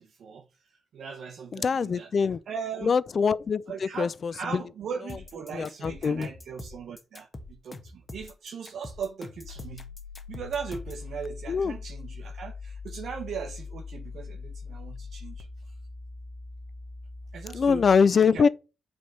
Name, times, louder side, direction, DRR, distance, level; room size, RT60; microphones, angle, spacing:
voice 1, 0.0-3.0 3.7-9.9 10.3-15.7 17.3-17.8 18.3-18.5, right 6 dB, 70° right, 0.8 m, -39 dB
voice 2, 1.6-2.4 2.9-3.6 4.0-4.3 5.5-6.3 11.5-11.7 17.5-18.5, left 6 dB, 50° left, 0.4 m, -23 dB
sound 1, 5.1-11.1, left 2 dB, 25° left, 1.1 m, -44 dB
sound 2, 9.4-18.0, left 4 dB, 80° left, 1.0 m, -41 dB
7.7 x 3.5 x 5.4 m
cardioid pair, 100°, 0 cm